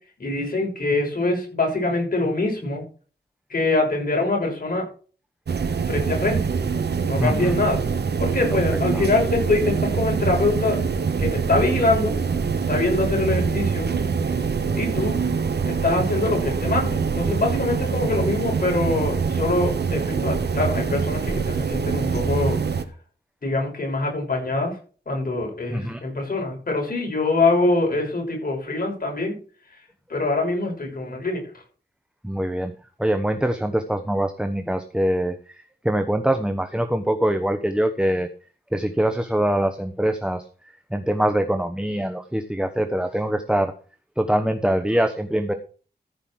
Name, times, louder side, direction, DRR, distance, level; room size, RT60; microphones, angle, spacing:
voice 1, 0.2-2.8 3.5-4.9 5.9-6.5 7.1-7.8 8.2-10.8 11.2-12.1 12.7-13.9 14.3-14.5 14.7-15.2 15.7-22.6 23.4-24.7 25.1-29.4 30.1-31.4, left 2 dB, 55° left, 0 dB, 6.4 m, -24 dB
sound 1, 5.5-22.8, right 5 dB, 75° right, 1.3 m, -24 dB
voice 2, 7.1-7.6 8.9-9.1 25.7-26.0 32.2-32.7 33.0-38.3 38.7-40.4 40.9-43.7 44.2-45.5, right 1 dB, 5° right, 6 dB, 1.1 m, -23 dB
14.5 x 5.4 x 6.3 m, 0.39 s
wide cardioid pair, 80°, 17 cm